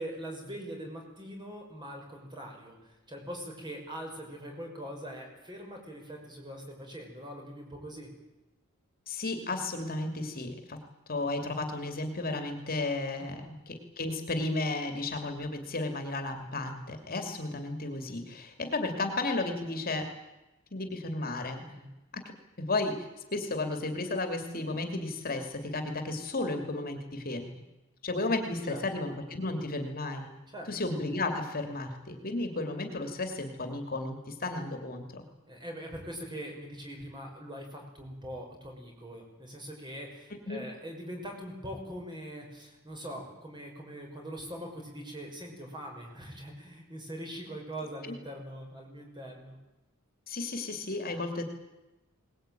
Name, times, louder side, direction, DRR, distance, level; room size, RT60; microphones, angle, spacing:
voice 1, 0.0-8.1 13.2-13.5 21.6-21.9 28.7-28.8 30.5-30.7 35.5-49.6, equal, 20° right, 1 dB, 6.0 m, -42 dB
voice 2, 9.1-10.8 11.1-20.1 20.7-21.6 22.1-22.2 22.6-27.6 28.0-30.3 30.7-35.2 40.5-40.7 48.0-48.1 50.3-51.4, left 2 dB, 40° left, 5 dB, 2.7 m, -33 dB
22.0 x 20.0 x 9.2 m, 1.0 s
head